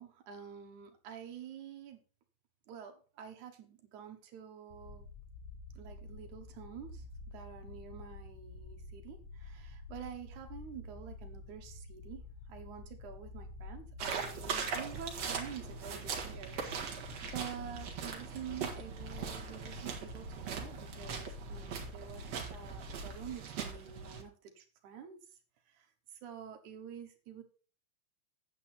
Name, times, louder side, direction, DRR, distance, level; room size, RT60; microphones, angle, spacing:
voice 1, 0.0-2.0 2.7-5.1 5.8-25.2 25.7-25.9 26.1-27.4, right 8 dB, 80° right, 6 dB, 2.8 m, -48 dB
sound 1, 4.7-23.4, left 3 dB, 65° left, 3.2 m, -49 dB
sound 2, 14.0-24.2, right 6 dB, 60° right, 2.7 m, -41 dB
9.0 x 8.5 x 4.3 m, 0.39 s
omnidirectional pair, 3.4 m